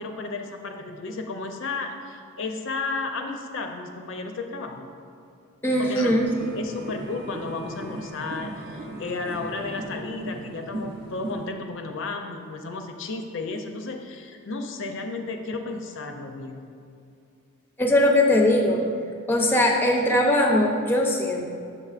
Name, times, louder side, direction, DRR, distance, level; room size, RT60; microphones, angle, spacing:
voice 1, 0.0-4.9 5.8-6.2 6.5-16.7, left 3 dB, 60° left, 4 dB, 0.4 m, -33 dB
voice 2, 5.6-6.2 17.8-18.8 19.3-21.4, left 1 dB, 10° left, 0 dB, 0.5 m, -20 dB
sound 1, 6.1-11.5, right 1 dB, 45° right, 0.6 m, -37 dB
6.9 x 6.7 x 2.4 m, 2.5 s
head